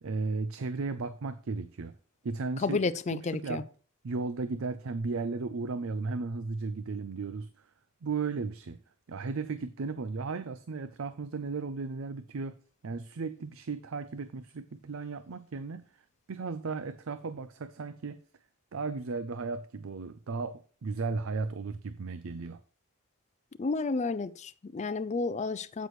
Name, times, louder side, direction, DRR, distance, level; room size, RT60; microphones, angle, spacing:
voice 1, 0.0-1.9 2.2-2.8 3.1-3.6 4.0-7.5 8.0-8.8 9.1-12.6 12.8-16.0 16.3-18.2 18.7-22.6, right 4 dB, 65° right, 0.5 m, -35 dB
voice 2, 2.6-3.6 23.6-25.9, left 3 dB, 30° left, 0.4 m, -31 dB
9.2 x 8.2 x 3.1 m
head